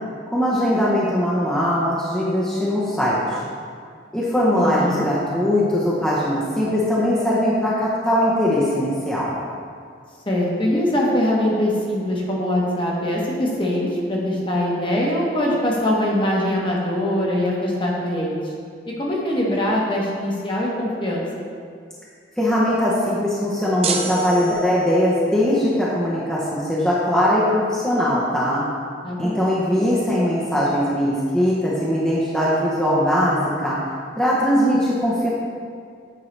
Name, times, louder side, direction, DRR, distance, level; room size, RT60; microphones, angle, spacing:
voice 1, 0.3-3.4 4.1-9.4 22.4-28.6 29.2-33.8 34.2-35.3, equal, 5° left, -8 dB, 0.7 m, -20 dB
voice 2, 4.6-5.0 10.3-18.5 19.0-21.2 29.0-29.4, left 1 dB, 30° left, -3 dB, 1.1 m, -22 dB
sound 1, 23.8-25.2, right 5 dB, 35° right, 0.4 m, -28 dB
8.8 x 4.6 x 3.2 m, 2.1 s
head